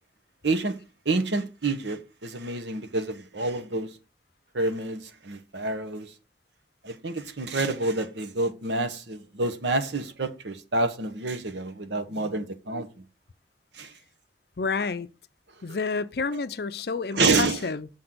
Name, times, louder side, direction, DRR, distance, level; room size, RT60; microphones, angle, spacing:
voice 1, 0.4-0.8 1.0-3.9 4.5-6.1 6.8-12.9 13.8-13.9 15.7-15.8 17.1-17.6, right 3 dB, 80° right, 1.0 m, -28 dB
voice 2, 14.6-15.1 15.6-17.9, left 4 dB, 60° left, 0.5 m, -29 dB
7.0 x 3.8 x 6.1 m
head